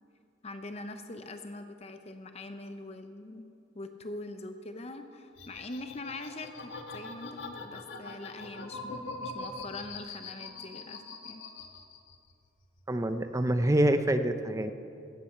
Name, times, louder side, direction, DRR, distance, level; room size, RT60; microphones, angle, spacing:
voice 1, 0.4-11.5, left 2 dB, 35° left, 8 dB, 0.6 m, -43 dB
sound 1, 5.4-12.3 12.6-13.5, left 3 dB, 85° left, 1.2 m, -42 dB
voice 2, 12.9-14.7, right 1 dB, 15° right, 9 dB, 0.5 m, -26 dB
16.5 x 8.8 x 6.5 m, 2.7 s
head